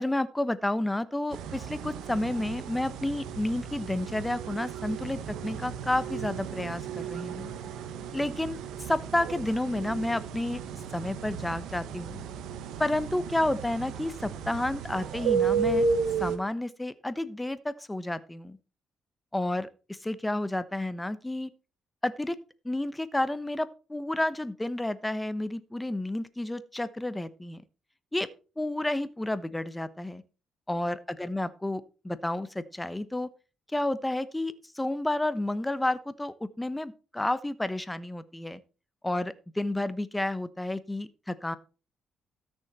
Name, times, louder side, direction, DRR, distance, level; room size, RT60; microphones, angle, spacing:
voice 1, 0.0-7.5 8.1-8.6 8.9-10.6 10.9-12.2 12.8-15.8 16.2-18.6 19.3-21.5 22.0-22.4 22.6-27.6 28.1-28.3 28.6-30.2 30.7-33.3 33.7-38.6 39.0-41.6, left 1 dB, 10° left, 14 dB, 1.0 m, -31 dB
sound 1, 1.3-16.4, right 5 dB, 85° right, 1.2 m, -33 dB
13.5 x 6.4 x 4.3 m, 0.33 s
cardioid pair, 90°, 0 cm